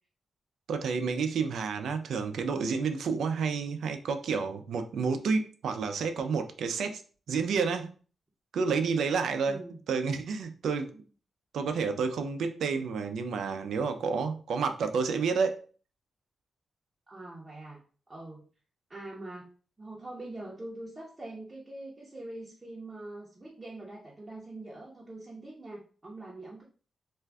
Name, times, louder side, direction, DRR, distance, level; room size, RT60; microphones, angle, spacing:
voice 1, 0.7-7.0 7.3-7.9 8.5-9.6 9.9-10.9 11.5-15.6, right 5 dB, 85° right, 7 dB, 0.4 m, -30 dB
voice 2, 9.5-9.8 10.9-11.0 17.1-17.8 18.1-18.4 18.9-19.5 19.8-26.6, right 2 dB, 20° right, -4 dB, 0.7 m, -43 dB
2.5 x 2.2 x 3.3 m, 0.40 s
cardioid pair, 110°, 0 cm